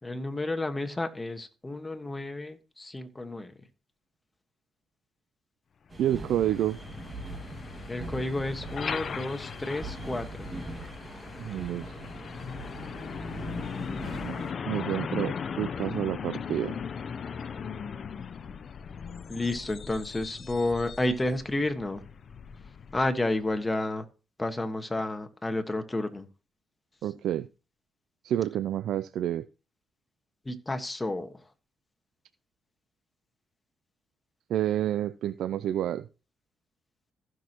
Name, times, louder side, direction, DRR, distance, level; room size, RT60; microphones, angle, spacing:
voice 1, 0.0-3.7 7.9-10.5 19.3-22.0 22.9-24.1 24.4-26.3 30.4-31.5, left 2 dB, 15° left, 1.4 m, -31 dB
Truck, 5.9-23.6, left 6 dB, 50° left, 0.6 m, -38 dB
sound 1, 5.9-14.5, right 2 dB, 30° right, 1.9 m, -42 dB
voice 2, 6.0-6.8 11.4-11.9 14.0-16.8 27.0-27.5 28.2-29.5 34.5-36.1, right 11 dB, 75° right, 0.3 m, -29 dB
15.5 x 6.2 x 3.0 m
cardioid pair, 90°, 0 cm